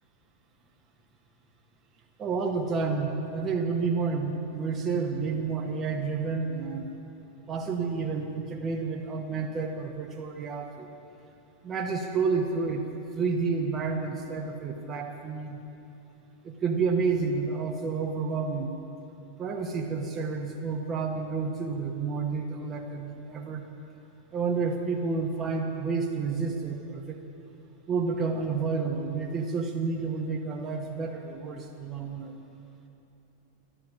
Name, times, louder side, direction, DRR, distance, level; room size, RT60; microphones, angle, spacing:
voice 1, 2.2-7.0 7.5-10.9 11.6-15.6 16.4-18.7 19.4-23.6 24.3-27.2 27.9-32.3, right 4 dB, 25° right, 1 dB, 1.3 m, -30 dB
12.5 x 12.0 x 7.1 m, 2.8 s
figure-of-eight pair, 90°, 0 cm